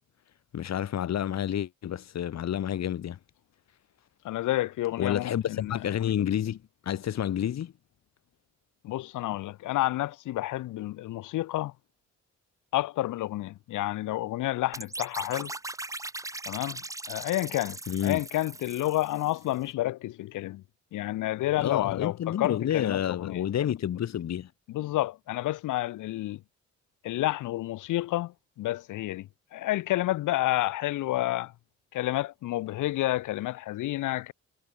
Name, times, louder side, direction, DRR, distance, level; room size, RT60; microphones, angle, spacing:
voice 1, 0.5-3.2 5.0-6.6 6.9-7.7 17.9-18.2 21.6-24.5, left 10 dB, 60° left, 2.2 m, -29 dB
voice 2, 4.2-5.8 8.8-11.7 12.7-15.5 16.5-16.8 17.1-20.6 20.9-23.5 24.7-26.4 27.0-31.5 31.9-34.3, left 16 dB, 85° left, 2.1 m, -30 dB
sound 1, 14.7-19.5, right 2 dB, 10° right, 1.1 m, -39 dB
cardioid pair, 90°, 30 cm